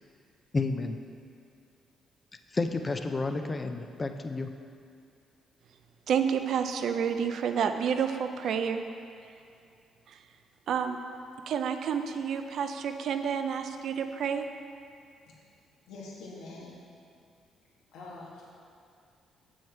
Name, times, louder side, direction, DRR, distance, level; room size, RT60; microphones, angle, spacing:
voice 1, 0.5-1.0 2.5-4.5, left 3 dB, 25° left, 6 dB, 0.5 m, -30 dB
voice 2, 6.1-8.8 10.1-10.2 10.7-11.0 11.5-14.5, right 7 dB, 70° right, 7 dB, 0.5 m, -29 dB
voice 3, 15.9-16.8 17.9-18.5, left 3 dB, 85° left, -4 dB, 1.5 m, -44 dB
7.3 x 6.4 x 4.4 m, 2.5 s
cardioid pair, 90°, 0 cm